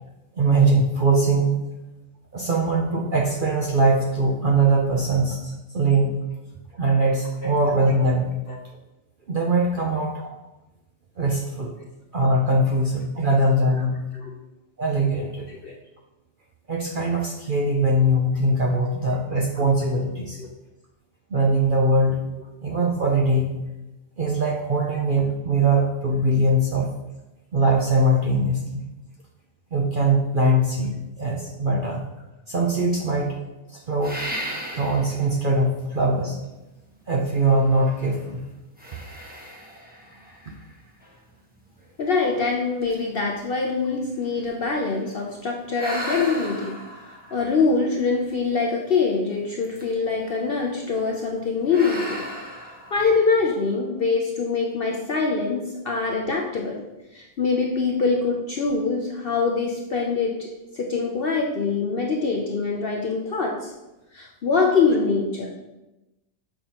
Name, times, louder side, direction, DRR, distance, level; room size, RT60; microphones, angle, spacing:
voice 1, 0.4-1.5 2.3-5.4 5.7-6.2 6.8-8.4 9.3-10.1 11.2-11.7 12.1-14.0 14.8-15.5 16.7-20.4 21.3-22.2 22.6-23.6 24.2-26.9 27.5-28.8 29.7-30.9 31.2-32.0 32.5-33.3 33.7-34.2 34.7-36.4 37.1-38.4, right 2 dB, 50° right, -1 dB, 0.6 m, -21 dB
sound 1, 34.0-35.3 35.9-36.0 37.4-38.2 38.8-41.1 41.8-41.9 42.4-42.5 42.8-45.1 45.7-48.5 49.6-50.2 50.5-50.8 51.7-53.6, equal, 10° right, 0.9 m, -36 dB
voice 2, 42.0-46.8 47.3-52.3 52.9-56.8 57.1-60.5 60.7-63.7 64.1-65.5, left 4 dB, 55° left, 0 dB, 0.6 m, -24 dB
6.8 x 5.3 x 2.9 m, 1.0 s
omnidirectional pair, 1.5 m